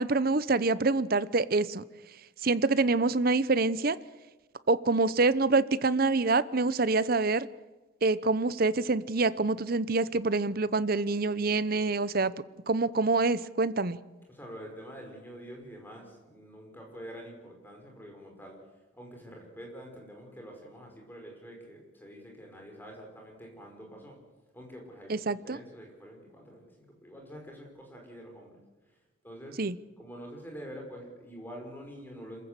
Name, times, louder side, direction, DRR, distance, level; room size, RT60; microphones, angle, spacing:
voice 1, 0.0-1.8 2.4-4.0 4.7-7.5 8.0-12.3 12.7-14.0 25.1-25.6 29.6-29.8, right 3 dB, 50° right, 17 dB, 0.8 m, -26 dB
voice 2, 14.3-18.6 18.9-24.2 24.5-28.6 29.2-29.6 30.0-32.5, equal, 10° left, 1 dB, 5.4 m, -46 dB
27.0 x 15.0 x 8.3 m, 1.2 s
head